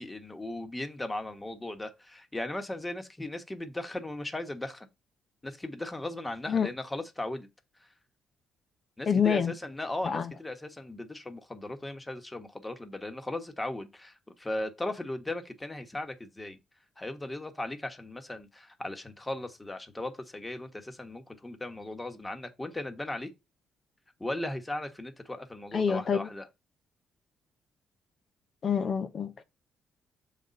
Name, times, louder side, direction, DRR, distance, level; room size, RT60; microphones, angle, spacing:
voice 1, 0.0-4.9 5.4-7.5 7.8-7.9 9.0-16.6 17.0-23.3 24.2-26.5, left 1 dB, 15° left, 1.3 m, -37 dB
voice 2, 9.1-9.5 10.0-10.3 25.7-26.3 28.6-29.4, left 7 dB, 50° left, 0.7 m, -27 dB
7.0 x 4.2 x 5.2 m
cardioid pair, 90°, 0 cm